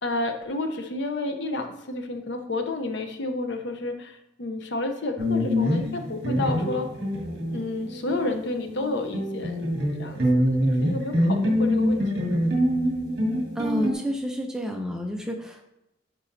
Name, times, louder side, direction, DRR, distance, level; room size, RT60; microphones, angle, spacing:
voice 1, 0.0-6.9 7.5-9.7 10.0-12.4, left 2 dB, 60° left, 6 dB, 0.6 m, -31 dB
sound 1, 5.2-8.4 8.7-13.9, equal, 50° right, 1.9 m, -25 dB
voice 2, 13.6-15.6, equal, 5° right, 2 dB, 0.5 m, -29 dB
9.8 x 4.0 x 2.6 m, 0.90 s
head